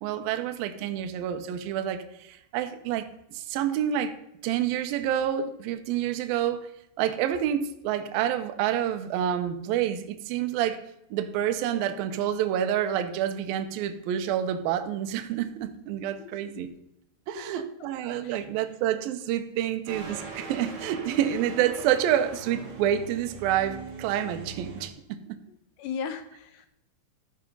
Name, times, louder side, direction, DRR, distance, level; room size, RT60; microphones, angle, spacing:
voice 1, 0.0-4.1 4.4-6.7 7.0-10.8 11.1-16.7 17.3-25.4, right 10 dB, 85° right, 8 dB, 2.1 m, -28 dB
voice 2, 16.2-16.7 17.4-17.7 18.2-18.5 25.8-26.7, left 6 dB, 80° left, 9 dB, 2.6 m, -38 dB
sound 1, 19.8-24.9, right 4 dB, 50° right, 3.2 m, -40 dB
14.0 x 5.6 x 5.3 m, 0.80 s
omnidirectional pair, 5.3 m